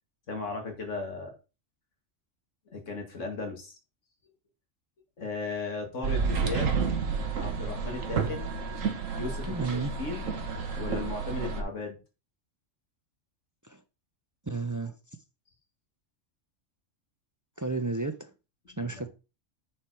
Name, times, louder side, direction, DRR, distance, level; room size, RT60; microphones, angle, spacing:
voice 1, 0.3-1.3 2.7-3.7 5.2-6.8 7.4-8.5 9.2-10.3 10.7-12.0 18.8-19.1, left 3 dB, 70° left, 2.5 m, -36 dB
sound 1, 6.0-11.6, right 5 dB, 90° right, 1.6 m, -30 dB
voice 2, 9.5-9.9 13.6-13.8 14.4-14.9 17.6-18.3 18.8-19.1, right 3 dB, 20° right, 0.5 m, -32 dB
9.1 x 4.8 x 4.7 m
omnidirectional pair, 1.3 m